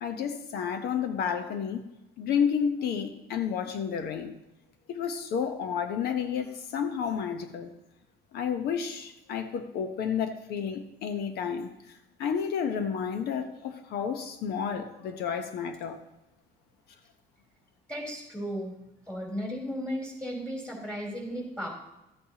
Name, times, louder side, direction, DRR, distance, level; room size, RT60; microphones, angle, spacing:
voice 1, 0.0-1.8 2.2-4.3 4.9-7.7 8.3-11.7 12.2-16.0, left 7 dB, 75° left, 7 dB, 1.0 m, -31 dB
voice 2, 17.9-18.7 19.1-21.7, equal, 5° left, -1 dB, 3.6 m, -35 dB
13.0 x 8.5 x 2.9 m, 0.93 s
cardioid pair, 110°, 17 cm